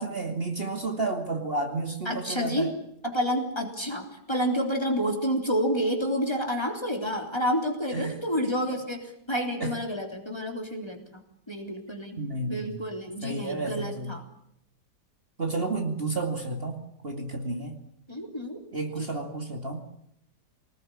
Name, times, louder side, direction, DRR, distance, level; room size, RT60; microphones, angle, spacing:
voice 1, 0.0-2.7 7.9-8.2 9.6-9.7 12.2-12.8 13.2-14.1 15.4-17.8 18.7-19.9, right 3 dB, 35° right, 3 dB, 2.7 m, -31 dB
voice 2, 2.0-2.7 3.0-11.2 11.5-12.2 12.5-14.2 15.6-15.9 18.1-18.6, equal, 15° left, 3 dB, 3.4 m, -29 dB
24.0 x 19.5 x 9.9 m, 0.75 s
omnidirectional pair, 1.8 m